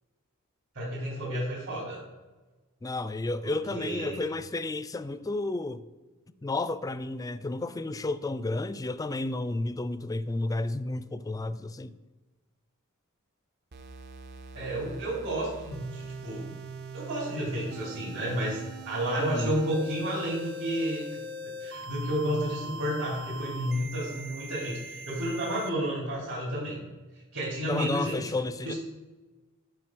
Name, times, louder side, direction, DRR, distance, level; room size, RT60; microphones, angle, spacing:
voice 1, 0.7-2.0 3.4-4.3 14.5-16.5 16.9-21.0 21.4-26.8 27.3-28.2 28.6-28.8, right 1 dB, 65° right, 3.5 m, -31 dB
voice 2, 2.8-5.8 6.4-11.9 19.2-19.5 27.6-28.7, left 2 dB, 15° left, 0.3 m, -32 dB
sound 1, 13.7-25.7, right 1 dB, 50° right, 0.7 m, -42 dB
9.5 x 5.1 x 6.0 m
head